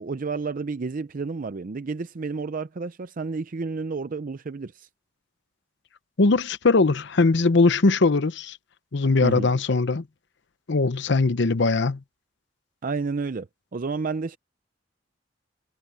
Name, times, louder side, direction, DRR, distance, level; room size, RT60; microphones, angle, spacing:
voice 1, 0.0-4.9 9.2-9.5 12.8-13.5 13.7-14.4, right 4 dB, 45° right, 0.5 m, -30 dB
voice 2, 6.2-8.6 8.9-10.0 10.7-12.0, left 3 dB, 65° left, 0.8 m, -20 dB
head